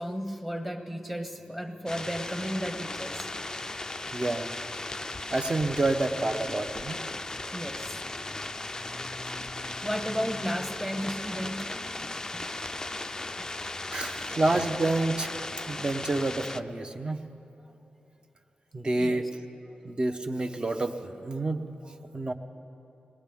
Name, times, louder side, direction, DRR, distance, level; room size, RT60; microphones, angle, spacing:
voice 1, 0.0-3.3 7.5-8.0 9.8-11.7 12.3-12.7 13.4-13.5 19.0-19.2, equal, 5° right, 5 dB, 1.0 m, -34 dB
sound 1, 1.9-16.6, left 2 dB, 20° left, 0.4 m, -37 dB
voice 2, 4.1-4.5 5.3-7.0 13.9-15.4 15.7-17.2 18.7-19.3 19.8-22.3, right 2 dB, 30° right, 7 dB, 0.8 m, -28 dB
21.5 x 19.0 x 3.5 m, 2.9 s
wide cardioid pair, 120°, 3 cm